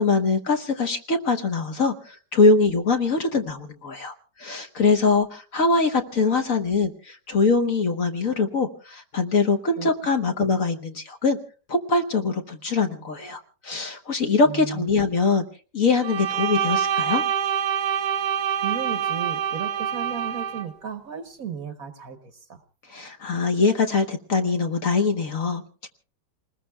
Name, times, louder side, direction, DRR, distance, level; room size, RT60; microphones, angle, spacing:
voice 1, 0.0-11.4 11.7-15.4 15.7-17.2 22.9-25.9, left 4 dB, 50° left, 5 dB, 1.3 m, -23 dB
voice 2, 14.5-14.9 18.6-22.6, right 7 dB, 55° right, 8 dB, 1.2 m, -35 dB
Bowed string instrument, 16.0-20.7, right 8 dB, 85° right, 1.8 m, -26 dB
29.0 x 20.0 x 2.3 m, 0.37 s
omnidirectional pair, 2.1 m